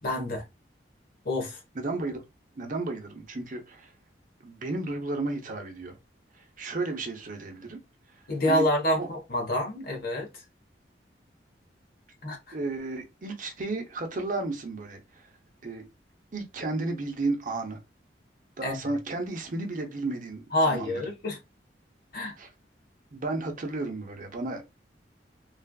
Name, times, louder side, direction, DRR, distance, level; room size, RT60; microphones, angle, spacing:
voice 1, 0.0-0.4 1.2-1.6 8.3-10.3 12.2-12.6 18.6-18.8 20.5-21.4 22.1-22.3, left 1 dB, 55° left, 1.1 m, -27 dB
voice 2, 1.7-2.2 2.6-3.9 4.4-5.9 6.3-7.8 8.5-8.6 9.0-9.1 12.5-15.3 15.6-15.8 16.3-17.8 18.6-21.0 22.4-22.5 23.1-24.7, right 2 dB, 50° right, 0.7 m, -33 dB
3.2 x 2.4 x 2.3 m
head